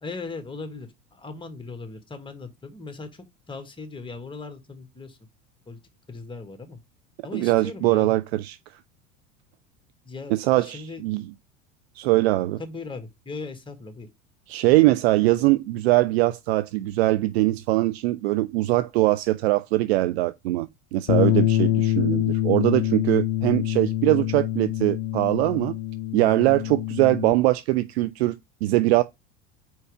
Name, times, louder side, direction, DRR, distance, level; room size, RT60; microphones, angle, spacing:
voice 1, 0.0-5.2 5.7-5.8 6.1-6.8 7.2-8.1 10.0-11.0 12.6-14.1, left 3 dB, 15° left, 1.6 m, -38 dB
voice 2, 7.3-8.6 10.3-11.2 12.0-12.6 14.5-25.8 26.1-29.0, right 18 dB, 55° right, 0.5 m, -22 dB
Bass guitar, 21.1-27.3, left 13 dB, 45° left, 0.6 m, -25 dB
4.7 x 4.4 x 4.7 m
figure-of-eight pair, 80°, 39 cm